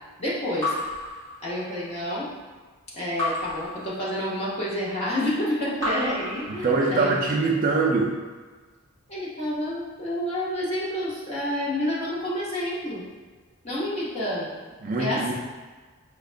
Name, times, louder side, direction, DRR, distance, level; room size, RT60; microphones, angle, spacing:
voice 1, 0.2-0.7 1.4-2.3 2.9-7.2 9.1-13.0 13.6-14.5 15.0-15.3, left 1 dB, 30° left, -7 dB, 0.8 m, -29 dB
Raindrop / Drip, 0.6-2.0 3.2-4.5 5.8-7.2, left 2 dB, 10° left, 1.5 m, -32 dB
voice 2, 6.6-8.2 14.8-15.3, right 3 dB, 40° right, -1 dB, 0.3 m, -23 dB
4.9 x 2.2 x 2.5 m, 1.4 s
head